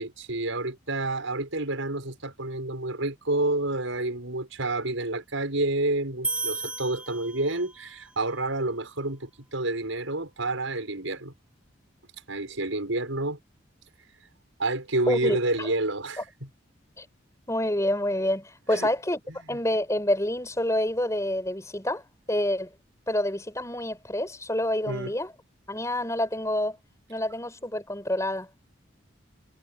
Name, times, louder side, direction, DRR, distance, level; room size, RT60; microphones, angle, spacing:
voice 1, 0.0-11.3 12.3-13.4 14.6-16.5 18.7-18.9 19.5-19.6 24.9-25.1, right 2 dB, 90° right, 6.4 m, -29 dB
sound 1, 6.2-7.9, right 3 dB, 5° right, 3.1 m, -33 dB
voice 2, 15.1-15.7 17.0-17.1 17.5-19.2 19.5-22.7 23.1-25.3 25.7-26.8 27.1-28.5, left 1 dB, 15° left, 5.2 m, -27 dB
head